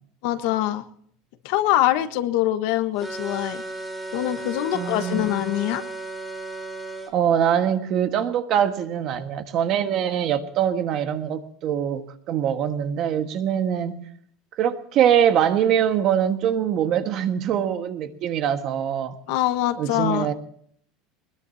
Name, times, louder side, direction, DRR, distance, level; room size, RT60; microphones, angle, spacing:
voice 1, 0.2-0.8 1.4-3.6 4.1-5.8 19.3-20.3, left 14 dB, 55° left, 9 dB, 1.3 m, -23 dB
sound 1, 3.0-7.1, right 2 dB, ahead, 2.9 m, -34 dB
voice 2, 4.7-5.4 7.1-14.0 14.6-19.2 19.8-20.3, right 9 dB, 40° right, 8 dB, 1.5 m, -23 dB
22.5 x 20.5 x 2.8 m, 0.63 s
supercardioid pair, 165°, 0 cm